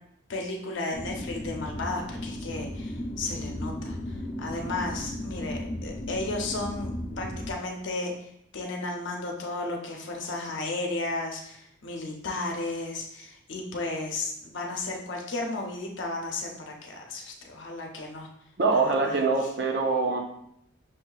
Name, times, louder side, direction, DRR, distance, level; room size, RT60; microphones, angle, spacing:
voice 1, 0.3-6.9 7.2-18.3 18.7-19.5, left 2 dB, 65° left, 1 dB, 0.7 m, -34 dB
sound 1, 0.9-7.5, left 1 dB, 30° left, 0.6 m, -35 dB
voice 2, 18.6-20.2, right 4 dB, 55° right, 1 dB, 0.6 m, -24 dB
6.0 x 2.7 x 2.3 m, 0.73 s
head